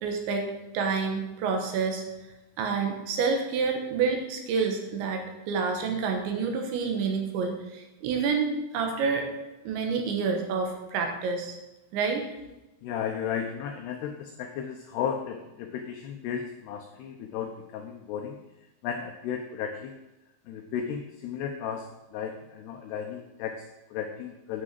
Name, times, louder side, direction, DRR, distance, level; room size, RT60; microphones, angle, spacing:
voice 1, 0.0-2.0 2.6-9.3 9.6-11.6 11.9-12.3, right 5 dB, 75° right, 3 dB, 3.3 m, -28 dB
voice 2, 12.8-18.4 18.8-20.0 20.5-24.6, left 8 dB, 90° left, 4 dB, 2.3 m, -34 dB
9.5 x 6.2 x 7.6 m, 1.0 s
omnidirectional pair, 5.7 m